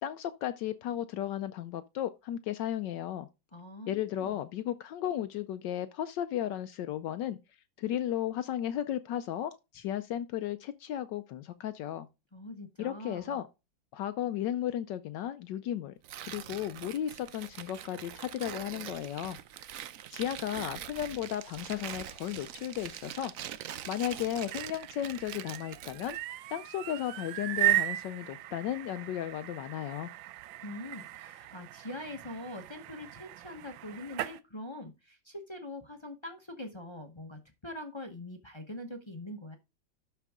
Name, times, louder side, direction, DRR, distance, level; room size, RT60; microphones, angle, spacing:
voice 1, 0.0-3.3 3.9-7.4 7.8-12.1 12.8-13.5 13.9-15.9 16.2-19.4 20.1-23.3 23.9-26.2 26.5-30.1, left 11 dB, 75° left, 1.2 m, -34 dB
voice 2, 3.5-4.4 12.3-13.4 30.6-39.6, left 1 dB, 20° left, 0.7 m, -43 dB
Tearing, 16.0-26.2, right 11 dB, 70° right, 0.8 m, -44 dB
sound 1, 24.3-34.4, right 16 dB, 85° right, 1.3 m, -36 dB
12.0 x 4.5 x 3.6 m
omnidirectional pair, 2.0 m